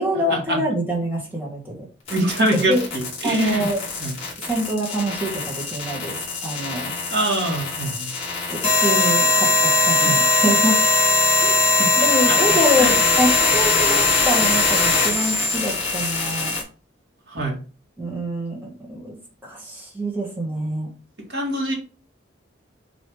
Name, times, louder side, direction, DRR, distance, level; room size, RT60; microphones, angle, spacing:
voice 1, 0.0-1.7 2.7-2.8 3.2-3.8 4.4-6.2 6.4-6.9 8.5-10.8 11.4-11.6 12.0-16.5 18.0-19.1 19.4-20.9, equal, 10° right, -3 dB, 1.6 m, -25 dB
sound 1, 2.1-16.6, left 3 dB, 30° left, 2.3 m, -20 dB
voice 2, 2.1-3.7 4.0-4.1 7.1-8.1 9.3-9.4 10.0-10.2 11.8-11.9 12.3-12.4 12.8-13.0 17.3-17.6 21.3-21.7, right 1 dB, 55° right, -1 dB, 1.9 m, -24 dB
6.4 x 3.1 x 4.7 m, 0.36 s
head